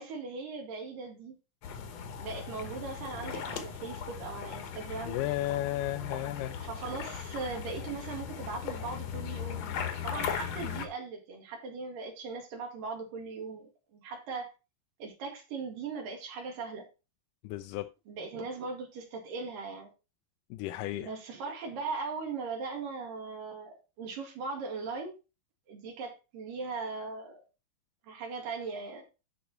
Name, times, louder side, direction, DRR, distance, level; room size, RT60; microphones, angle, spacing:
voice 1, 0.0-1.4 2.2-5.2 6.6-9.8 10.0-14.5 15.0-16.9 18.1-19.9 21.0-25.2 25.7-27.4 28.0-29.1, right 4 dB, 75° right, 3.7 m, -39 dB
sound 1, 1.6-10.9, left 7 dB, 60° left, 2.0 m, -38 dB
voice 2, 5.0-6.6 17.4-17.9 20.5-21.1, left 15 dB, 80° left, 2.1 m, -33 dB
11.0 x 4.1 x 4.2 m
omnidirectional pair, 3.9 m